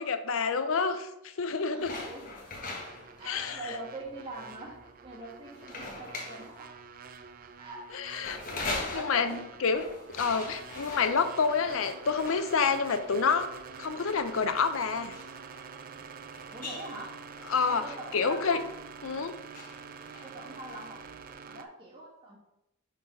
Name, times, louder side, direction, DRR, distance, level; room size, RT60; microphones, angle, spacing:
voice 1, 0.0-2.0 3.2-3.8 7.9-8.4 8.8-9.9 10.1-13.5 13.8-15.1 17.5-17.8 18.1-18.6 19.0-19.4, left 5 dB, 70° left, 10 dB, 0.5 m, -28 dB
voice 2, 1.7-2.3 3.2-6.7 7.6-8.0 8.9-9.5 16.5-17.1 17.7-18.7 20.2-21.0 21.5-22.4, right 2 dB, 25° right, -5 dB, 1.7 m, -43 dB
sound 1, 1.8-21.3, left 2 dB, 40° left, 1.2 m, -43 dB
sound 2, 2.8-21.7, right 5 dB, 40° right, 0.4 m, -47 dB
5.5 x 3.9 x 5.4 m, 0.87 s
head